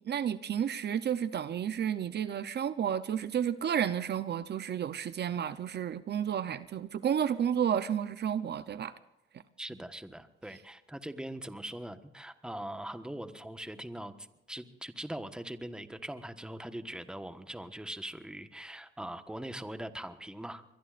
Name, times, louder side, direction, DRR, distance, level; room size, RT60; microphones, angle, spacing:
voice 1, 0.0-8.9, right 9 dB, 55° right, 13 dB, 0.7 m, -31 dB
voice 2, 9.6-20.6, right 1 dB, 5° right, 9 dB, 1.3 m, -41 dB
24.0 x 22.0 x 2.5 m, 0.95 s
cardioid pair, 95°, 21 cm